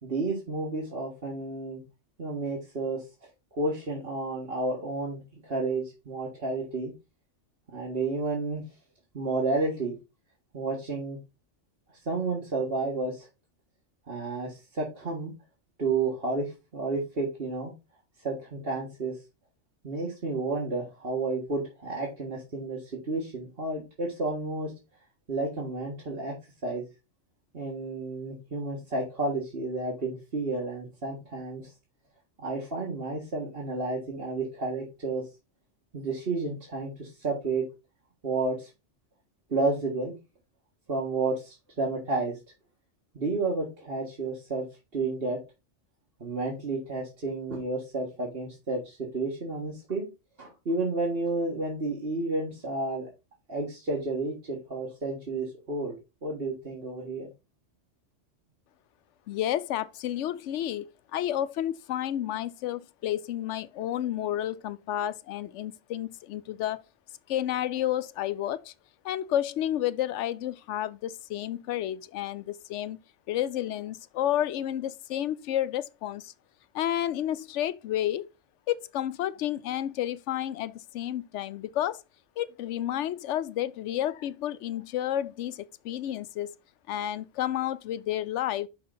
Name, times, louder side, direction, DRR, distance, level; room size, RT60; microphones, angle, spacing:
voice 1, 0.0-1.8 2.2-3.0 3.5-6.9 7.7-8.6 9.1-9.9 10.5-11.2 12.1-13.3 14.1-15.3 15.8-17.7 18.2-19.1 19.8-24.7 25.3-26.4 26.6-26.8 27.5-31.7 32.4-35.3 35.9-37.6 38.2-38.7 39.5-40.1 40.9-42.4 43.1-44.6 44.9-45.4 46.2-50.1 50.4-53.1 53.5-57.3, right 3 dB, 55° right, 1.9 m, -31 dB
voice 2, 59.3-66.8 67.3-68.7 69.0-73.0 73.3-76.3 76.7-78.3 78.7-82.0 82.4-86.5 86.9-88.7, left 12 dB, 80° left, 0.9 m, -31 dB
5.8 x 5.6 x 3.9 m
omnidirectional pair, 1.2 m